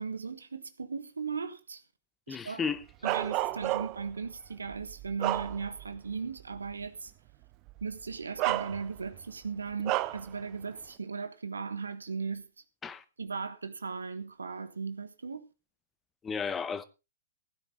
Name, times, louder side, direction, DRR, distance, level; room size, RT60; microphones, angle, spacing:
voice 1, 0.0-1.8 2.3-2.6 3.0-7.1 7.8-12.5 13.2-15.5, right 5 dB, 80° right, 1.5 m, -37 dB
voice 2, 2.3-2.8 12.8-13.0 16.2-16.8, left 6 dB, 15° left, 1.0 m, -33 dB
Bark, 3.0-4.1 4.7-6.0 6.4-6.6 7.7-7.8 8.4-9.2 9.8-10.3, right 17 dB, 35° right, 0.7 m, -31 dB
16.0 x 10.0 x 3.7 m
figure-of-eight pair, 110°, 0 cm